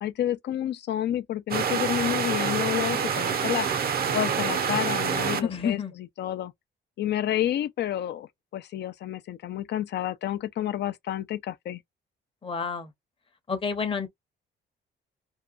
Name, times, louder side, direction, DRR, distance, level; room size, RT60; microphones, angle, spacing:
voice 1, 0.0-3.7 4.1-5.8 6.2-6.5 7.0-11.8, left 11 dB, 60° left, 0.5 m, -29 dB
sound 1, 1.5-5.4, right 7 dB, 50° right, 0.6 m, -27 dB
voice 2, 5.4-5.9 12.4-12.9 13.5-14.1, left 6 dB, 25° left, 0.8 m, -29 dB
2.7 x 2.2 x 2.4 m
cardioid pair, 90°, 20 cm